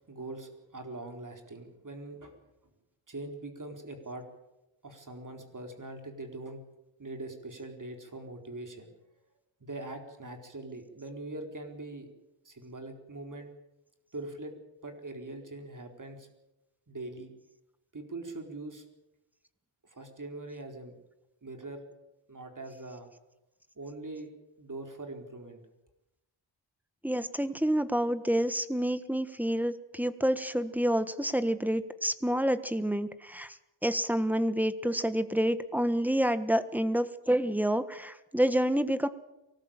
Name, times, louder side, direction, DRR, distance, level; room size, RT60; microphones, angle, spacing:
voice 1, 0.0-2.4 3.1-4.2 4.8-6.6 7.0-8.9 9.6-12.1 12.4-13.5 14.1-14.5 14.8-16.3 16.9-17.3 17.9-18.8 19.8-20.9 21.4-21.8 22.3-23.1 23.8-24.3 24.6-25.6, right 2 dB, 40° right, 4 dB, 4.3 m, -42 dB
voice 2, 27.0-33.6 33.8-39.1, equal, 5° right, 12 dB, 1.4 m, -28 dB
24.0 x 19.0 x 8.9 m, 0.95 s
wide cardioid pair, 115°, 49 cm